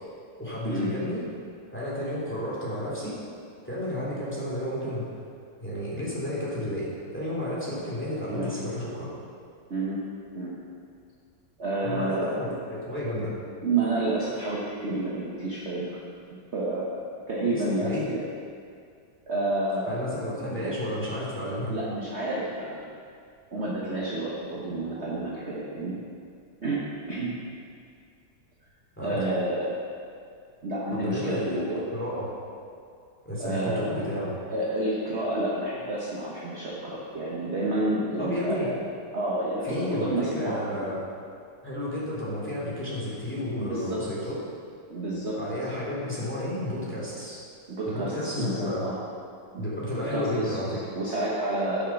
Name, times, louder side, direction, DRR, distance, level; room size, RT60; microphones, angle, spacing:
voice 1, 0.4-1.2 1.7-3.2 3.6-5.1 5.6-9.1 11.8-13.3 17.4-18.1 19.9-21.7 29.0-29.2 30.9-32.3 33.2-34.3 38.2-38.7 39.6-41.0 41.6-44.4 45.4-47.4 47.9-48.8 49.6-50.8, left 1 dB, 5° left, -7 dB, 2.7 m, -32 dB
voice 2, 9.7-10.0 10.3-10.5 11.6-12.6 13.6-16.0 16.3-17.0 17.3-18.2 19.3-20.0 20.4-20.8 21.7-22.8 23.5-26.0 26.6-26.8 27.1-27.3 29.0-29.8 30.6-31.8 33.4-33.9 34.5-38.8 39.1-40.9 43.6-44.3 44.9-45.4 47.7-49.0 49.5-49.6 50.1-51.9, right 2 dB, 40° right, -6 dB, 1.3 m, -30 dB
9.8 x 6.5 x 6.0 m, 2.4 s
omnidirectional pair, 2.0 m